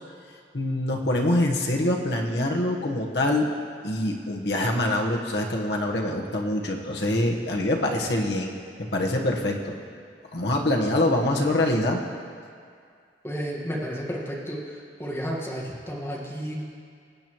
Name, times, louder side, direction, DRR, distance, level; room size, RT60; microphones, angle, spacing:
voice 1, 0.5-3.5 3.8-8.5 8.8-9.8 10.3-12.0, left 1 dB, 70° left, 0 dB, 1.2 m, -25 dB
voice 2, 13.2-14.6 15.0-16.6, equal, 15° left, -4 dB, 1.5 m, -32 dB
21.5 x 8.6 x 3.1 m, 2.2 s
head